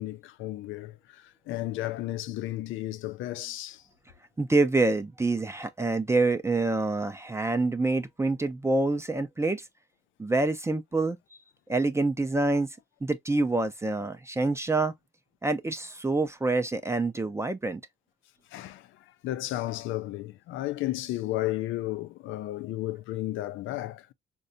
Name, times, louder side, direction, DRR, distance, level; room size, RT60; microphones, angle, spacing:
voice 1, 0.0-3.8 18.5-24.1, left 15 dB, 85° left, 0.4 m, -33 dB
voice 2, 4.4-9.7 10.2-11.2 11.7-12.7 13.0-14.9 15.4-17.8, right 2 dB, 15° right, 0.4 m, -26 dB
4.0 x 2.3 x 2.5 m
cardioid pair, 90°, 20 cm